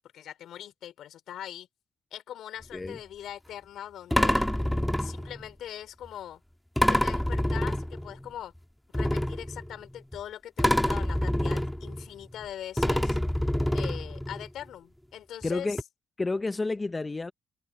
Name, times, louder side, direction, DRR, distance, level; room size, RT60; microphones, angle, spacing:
voice 1, 0.1-1.7 2.1-4.5 5.0-6.4 6.9-8.5 8.9-13.2 13.7-15.8, left 11 dB, 75° left, 3.7 m, -41 dB
sound 1, 2.6-2.9 4.1-5.5 6.8-8.3 8.9-10.2 10.6-12.5 12.8-14.5 15.4-15.5 15.8-15.9, left 1 dB, 5° left, 1.5 m, -27 dB
voice 2, 15.4-15.8 16.2-17.3, left 3 dB, 20° left, 0.6 m, -30 dB
cardioid pair, 90°, 0 cm